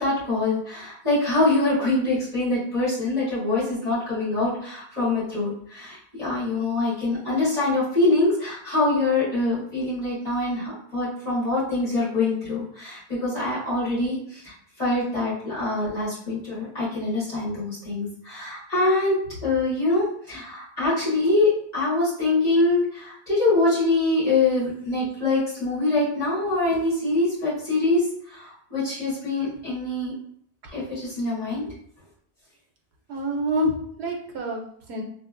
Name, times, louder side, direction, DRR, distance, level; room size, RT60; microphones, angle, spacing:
voice 1, 0.0-30.1 30.7-31.6, left 2 dB, 40° left, -10 dB, 1.8 m, -24 dB
voice 2, 33.1-35.0, equal, 90° right, 1 dB, 0.8 m, -27 dB
3.4 x 2.2 x 2.4 m, 0.65 s
omnidirectional pair, 1.1 m